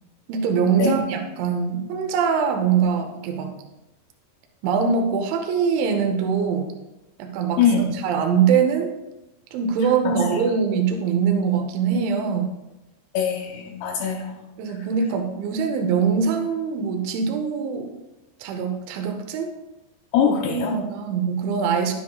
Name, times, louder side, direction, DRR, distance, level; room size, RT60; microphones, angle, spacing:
voice 1, 0.3-3.6 4.6-6.7 7.2-8.9 9.5-12.5 14.6-17.9 18.4-19.5 20.2-21.9, right 6 dB, 75° right, 4 dB, 3.2 m, -23 dB
voice 2, 7.6-7.9 10.0-10.4 13.1-14.5 20.1-20.8, left 7 dB, 80° left, 2 dB, 2.5 m, -22 dB
11.0 x 10.5 x 2.4 m, 0.98 s
omnidirectional pair, 5.6 m